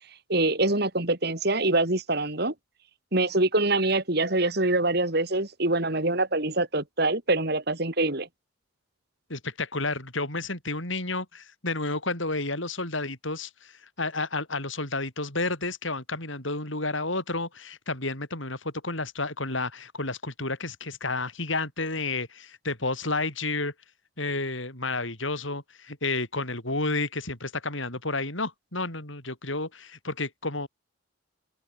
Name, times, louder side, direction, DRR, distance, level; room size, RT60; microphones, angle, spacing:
voice 1, 0.3-2.5 3.1-8.3, right 2 dB, 55° right, 3.3 m, -25 dB
voice 2, 9.3-23.7 24.2-30.7, left 3 dB, 75° left, 7.8 m, -31 dB
open air
head